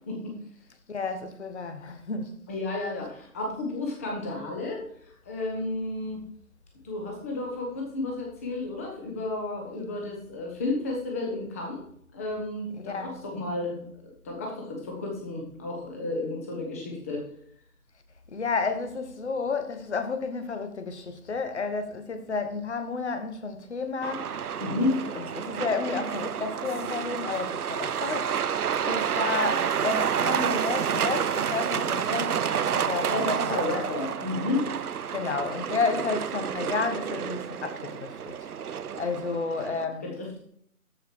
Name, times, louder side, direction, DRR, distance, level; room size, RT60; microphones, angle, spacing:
voice 1, 0.9-2.4 12.7-13.2 18.3-24.3 25.1-33.6 35.1-38.4 39.0-40.0, left 4 dB, 50° left, 1.5 m, -31 dB
voice 2, 2.5-4.8 5.3-6.2 6.8-11.8 12.1-17.3 24.6-25.0 33.1-34.7 40.0-40.4, left 2 dB, 10° left, 1.0 m, -32 dB
Truck, 24.0-39.8, right 8 dB, 75° right, 0.7 m, -29 dB
13.0 x 5.0 x 4.6 m
figure-of-eight pair, 160°, 45 cm